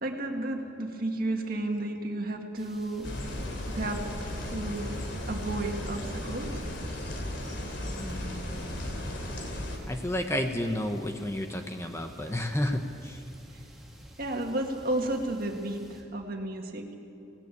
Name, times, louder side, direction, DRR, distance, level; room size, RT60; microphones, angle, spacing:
voice 1, 0.0-3.1 3.7-4.1 4.5-6.5 14.2-16.9, right 1 dB, 50° right, 3 dB, 2.0 m, -32 dB
sound 1, 2.6-16.0, right 1 dB, ahead, 2.4 m, -52 dB
sound 2, 3.0-9.8, left 1 dB, 70° left, 2.9 m, -35 dB
voice 2, 8.0-9.0 9.9-13.2, left 1 dB, 15° left, 5 dB, 0.9 m, -32 dB
18.5 x 17.5 x 8.5 m, 2.9 s
head